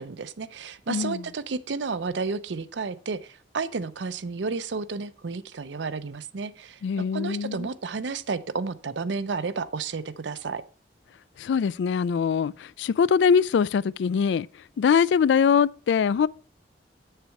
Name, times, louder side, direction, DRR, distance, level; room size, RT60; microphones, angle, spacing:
voice 1, 0.0-10.6, right 4 dB, 85° right, 0.6 m, -32 dB
voice 2, 0.9-1.2 6.8-7.7 11.4-14.5 14.8-16.3, left 6 dB, 80° left, 0.3 m, -22 dB
8.1 x 6.6 x 4.6 m
head